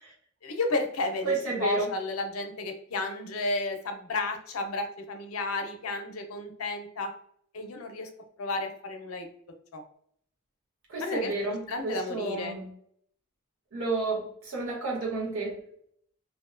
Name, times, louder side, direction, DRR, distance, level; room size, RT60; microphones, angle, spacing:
voice 1, 0.4-1.3 1.6-7.1 7.5-8.1 8.4-9.3 9.7-9.8 11.0-11.3 11.7-12.5, left 2 dB, 85° left, 5 dB, 0.5 m, -32 dB
voice 2, 1.2-1.9 10.9-12.7 13.7-15.6, right 3 dB, 80° right, -4 dB, 1.0 m, -31 dB
2.5 x 2.1 x 2.4 m, 0.65 s
head